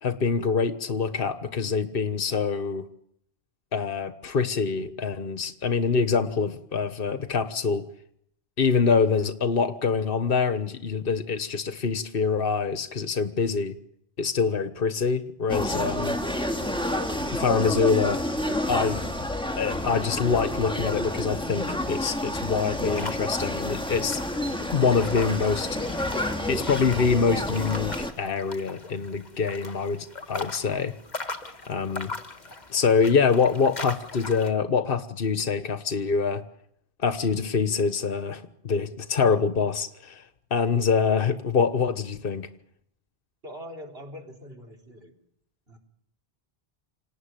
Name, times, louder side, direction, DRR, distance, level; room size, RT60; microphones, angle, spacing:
voice 1, 0.0-2.8 3.7-7.9 8.6-13.8 14.2-16.2 17.3-18.2 18.7-19.0 19.6-24.2 24.7-25.8 26.5-30.9 31.7-32.1 32.7-36.4 37.0-40.2 40.5-42.5, left 5 dB, 65° left, 10 dB, 1.5 m, -25 dB
sound 1, 15.5-28.1, left 1 dB, 5° left, 2.3 m, -29 dB
sound 2, 23.0-34.5, left 3 dB, 45° left, 2.0 m, -39 dB
voice 2, 43.4-45.1 45.7-45.8, equal, 70° right, 3 dB, 4.3 m, -42 dB
27.5 x 18.5 x 9.1 m, 0.73 s
omnidirectional pair, 1.0 m